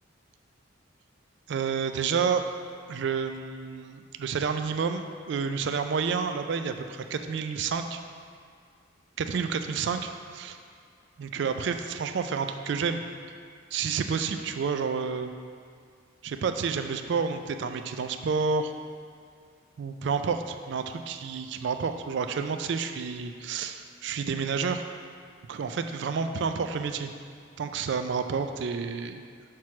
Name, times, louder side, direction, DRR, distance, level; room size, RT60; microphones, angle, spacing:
voice 1, 1.5-2.4 2.9-8.0 9.2-10.6 11.2-13.0 13.7-15.3 16.2-18.7 19.8-24.8 25.5-27.1 27.6-29.2, right 5 dB, 60° right, 7 dB, 0.3 m, -30 dB
5.9 x 3.1 x 5.7 m, 2.2 s
head